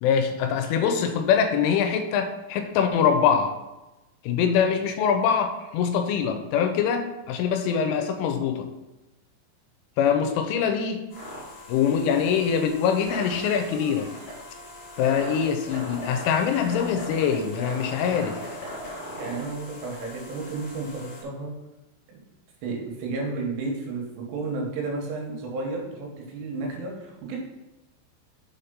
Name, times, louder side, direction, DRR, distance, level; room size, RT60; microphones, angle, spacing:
voice 1, 0.0-3.5 4.2-8.7 10.0-11.1 11.7-14.1 15.0-18.4, left 7 dB, 85° left, 7 dB, 3.1 m, -23 dB
sound 1, 11.1-21.2, left 1 dB, 30° left, 2.5 m, -39 dB
voice 2, 19.2-21.5 22.1-22.2 22.6-27.4, right 3 dB, 80° right, 0 dB, 3.9 m, -32 dB
7.4 x 4.3 x 5.2 m, 1.0 s
omnidirectional pair, 5.6 m